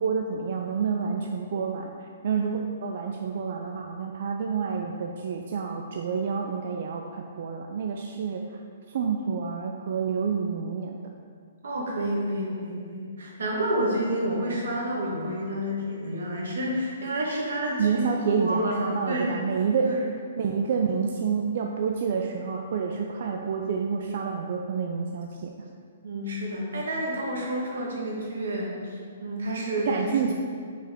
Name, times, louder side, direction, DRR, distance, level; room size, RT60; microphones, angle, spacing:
voice 1, 0.0-1.9 2.2-8.4 8.9-11.0 17.8-19.9 20.4-25.5 29.9-30.3, right 6 dB, 55° right, 2 dB, 0.4 m, -28 dB
voice 2, 11.6-19.4 19.8-20.1 26.0-30.3, right 1 dB, 85° right, -3 dB, 1.5 m, -29 dB
5.7 x 4.8 x 3.6 m, 2.1 s
hypercardioid pair, 160°, 0 cm